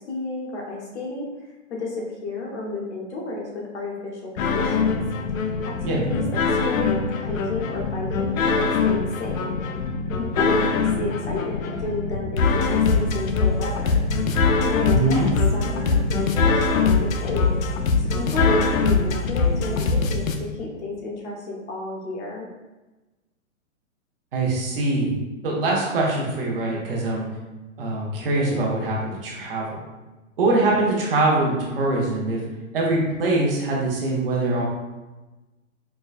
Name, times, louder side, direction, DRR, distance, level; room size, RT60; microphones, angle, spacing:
voice 1, 0.1-1.2 1.7-4.9 5.4-9.6 10.2-14.0 14.6-15.2 15.5-17.5 18.0-22.5, left 2 dB, 55° left, -2 dB, 1.1 m, -32 dB
sound 1, 4.4-20.4, left 4 dB, 80° left, 0.6 m, -22 dB
voice 2, 14.9-15.3 24.3-25.1 25.4-27.2 27.8-29.8 30.4-32.4 32.7-34.6, right 2 dB, 45° right, -3 dB, 0.8 m, -23 dB
4.5 x 2.2 x 2.4 m, 1.1 s
hypercardioid pair, 160°, 40 cm